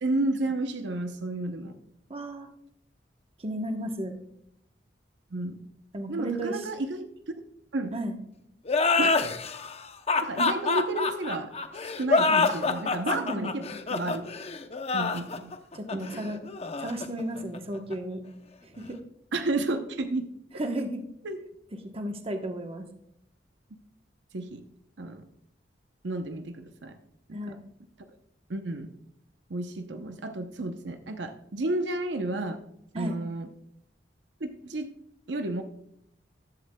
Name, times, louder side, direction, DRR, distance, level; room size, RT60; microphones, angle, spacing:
voice 1, 0.0-1.8 5.3-5.6 6.1-7.1 7.7-7.9 9.0-9.2 10.2-11.5 12.0-13.6 13.9-14.3 14.9-15.5 15.9-16.3 19.3-20.3 21.2-21.4 24.3-24.6 25.0-25.3 26.0-27.0 27.3-27.6 28.5-28.9 29.5-32.6 33.0-33.5 34.4-34.9 35.3-35.6, right 2 dB, 75° right, 7 dB, 0.8 m, -31 dB
voice 2, 2.1-2.5 3.4-4.1 5.9-6.6 7.9-8.2 13.1-13.8 15.7-16.4 16.8-18.2 18.6-19.0 20.5-21.0 21.9-22.9 27.3-27.6 32.9-33.1, right 1 dB, 35° right, 5 dB, 1.1 m, -34 dB
sound 1, 8.7-17.9, left 4 dB, 35° left, 0.7 m, -27 dB
14.5 x 11.0 x 2.3 m, 0.77 s
head